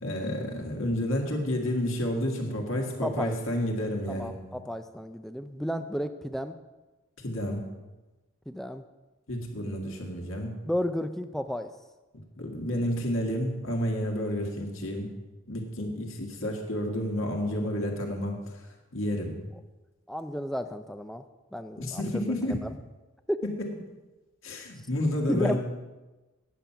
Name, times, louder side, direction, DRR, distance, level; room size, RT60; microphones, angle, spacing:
voice 1, 0.0-4.4 7.2-7.6 9.3-10.6 12.4-15.1 15.5-18.4 18.9-19.4 21.8-22.6 24.4-25.6, left 1 dB, 70° left, 1 dB, 1.7 m, -30 dB
voice 2, 3.0-3.4 4.1-6.5 8.5-8.8 10.7-11.7 20.1-21.2 21.5-22.7 23.3-23.4 25.3-25.6, equal, ahead, 9 dB, 0.3 m, -32 dB
9.3 x 7.4 x 5.6 m, 1.2 s
head